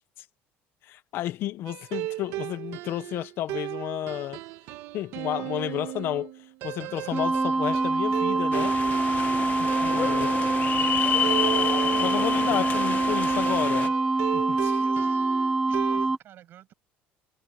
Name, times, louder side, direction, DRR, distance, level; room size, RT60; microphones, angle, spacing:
voice 1, 0.8-4.4 4.9-8.7 9.6-10.3 12.0-13.9 14.3-14.8, left 13 dB, 55° left, 1.0 m, -32 dB
sound 1, 1.7-16.1, right 16 dB, 70° right, 1.7 m, -36 dB
voice 2, 6.8-7.4 7.7-7.8 8.3-8.4 11.7-12.5 13.3-13.8 14.2-16.7, right 12 dB, 50° right, 7.4 m, -52 dB
sound 2, 7.1-16.2, right 3 dB, 10° right, 0.5 m, -25 dB
sound 3, 8.5-13.9, left 9 dB, 40° left, 1.4 m, -30 dB
cardioid pair, 135°, 5 cm